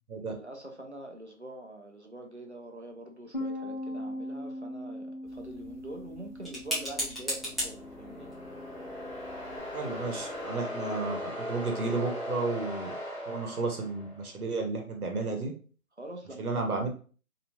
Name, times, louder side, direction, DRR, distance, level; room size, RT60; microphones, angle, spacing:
voice 1, 0.3-8.3 16.0-16.8, right 1 dB, 55° right, 2 dB, 0.5 m, -45 dB
Bass guitar, 3.3-9.6, left 1 dB, 40° left, 0.8 m, -40 dB
sound 1, 5.3-10.5, equal, ahead, 0.6 m, -39 dB
sound 2, 7.3-14.3, left 1 dB, 30° right, 1.4 m, -39 dB
voice 2, 9.7-12.9 13.3-15.5 16.4-16.9, right 3 dB, 85° right, 2 dB, 1.0 m, -32 dB
2.8 x 2.7 x 2.3 m, 0.39 s
figure-of-eight pair, 180°, 43 cm